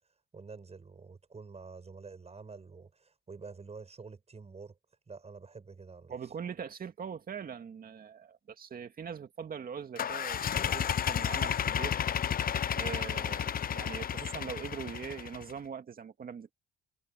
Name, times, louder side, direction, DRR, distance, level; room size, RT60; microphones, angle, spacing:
voice 1, 0.3-4.8 5.1-6.2, right 4 dB, 30° right, 7.2 m, -48 dB
voice 2, 6.1-12.0 12.7-16.5, right 7 dB, 45° right, 2.2 m, -42 dB
sound 1, 10.0-15.5, left 9 dB, 45° left, 0.8 m, -32 dB
cardioid pair, 90°, 20 cm